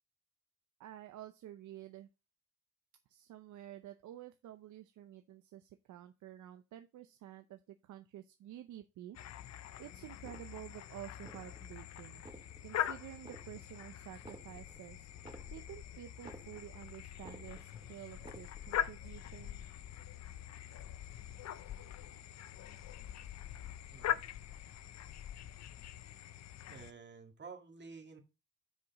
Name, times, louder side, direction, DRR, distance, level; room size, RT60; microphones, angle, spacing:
voice 1, 0.8-2.1 3.1-15.1 15.5-19.6, right 12 dB, 75° right, 8 dB, 0.7 m, -51 dB
sound 1, 9.1-26.9, left 11 dB, 60° left, 0.6 m, -43 dB
sound 2, 10.2-10.8 11.2-11.8 12.1-12.8 13.2-13.8 14.1-16.8 17.1-17.8 18.1-18.8 19.1-19.3, right 2 dB, 15° right, 1.5 m, -55 dB
voice 2, 23.9-24.3 26.7-28.2, right 5 dB, 35° right, 3 dB, 2.1 m, -51 dB
6.6 x 4.9 x 4.7 m, 0.28 s
cardioid pair, 90°, 30 cm